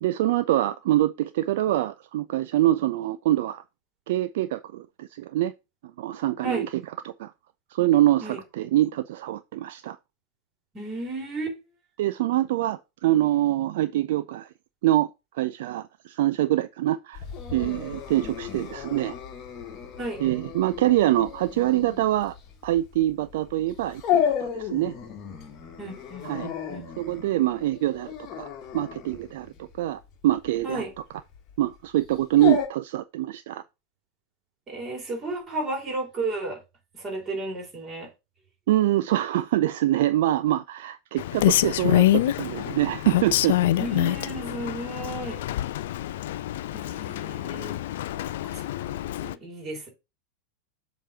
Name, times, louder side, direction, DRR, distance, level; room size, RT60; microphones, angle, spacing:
voice 1, 0.0-3.6 4.1-5.5 6.0-6.7 7.0-7.3 7.7-10.0 12.0-14.5 14.8-15.1 15.3-17.2 17.5-19.1 20.2-22.3 22.6-24.9 26.2-26.5 27.0-28.5 28.7-30.8 31.6-33.6 38.7-43.6, right 14 dB, 55° right, 0.3 m, -25 dB
voice 2, 10.7-11.6 20.0-20.2 25.8-26.9 30.6-30.9 34.7-36.6 36.9-38.1 43.6-45.4 46.7-47.8 48.4-49.9, right 2 dB, 25° right, 3.1 m, -33 dB
Dog, 17.1-32.7, left 9 dB, 35° left, 1.3 m, -33 dB
Rain, 41.2-49.3, left 14 dB, 55° left, 0.3 m, -26 dB
7.3 x 3.1 x 4.9 m
figure-of-eight pair, 90°, 0 cm